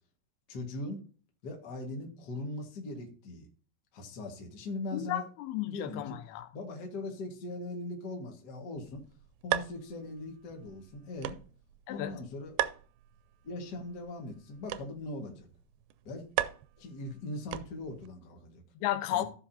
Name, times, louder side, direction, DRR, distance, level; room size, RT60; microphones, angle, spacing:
voice 1, 0.5-1.0 1.4-3.5 3.9-5.2 5.6-6.2 6.5-9.0 9.4-11.4 11.9-12.6 13.4-15.5 16.0-16.2 16.8-18.6 19.1-19.2, left 2 dB, 50° left, 1.2 m, -40 dB
voice 2, 4.9-6.5 11.9-12.1 18.8-19.3, left 13 dB, 90° left, 2.8 m, -33 dB
sound 1, 8.8-18.1, right 14 dB, 90° right, 2.5 m, -39 dB
14.5 x 5.8 x 2.7 m
omnidirectional pair, 4.3 m